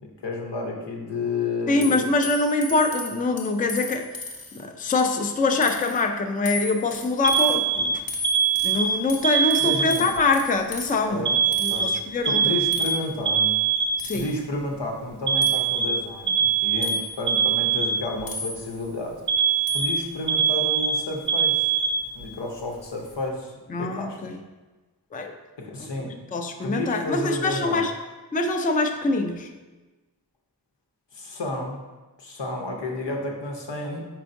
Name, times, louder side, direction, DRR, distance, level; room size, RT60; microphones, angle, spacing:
voice 1, 0.2-2.0 9.6-10.1 11.1-11.3 11.7-11.9 12.2-13.6 14.1-21.7 22.1-23.5 23.8-24.4 25.6-26.1 26.6-27.9 31.1-31.8 32.2-34.0, left 2 dB, 90° left, 0 dB, 0.8 m, -31 dB
voice 2, 1.7-4.1 4.6-8.0 8.6-11.3 11.6-12.6 14.0-14.3 23.7-24.4 25.1-25.3 26.3-27.9 28.3-29.5, left 3 dB, 20° left, 5 dB, 0.3 m, -24 dB
sound 1, 1.8-4.6 5.0-5.4 5.6-6.0 6.5-7.6 8.1-11.0 11.5-11.8 12.7-13.1 14.0-14.4 15.4-15.7 16.8-17.3 18.3-18.9 19.7-20.1, left 2 dB, 55° left, 0.8 m, -35 dB
Alarm, 7.2-10.2 11.3-14.2 15.3-18.2 19.3-22.3, right 7 dB, 70° right, 0.6 m, -23 dB
4.7 x 4.3 x 2.6 m, 1.2 s
wide cardioid pair, 60°, 41 cm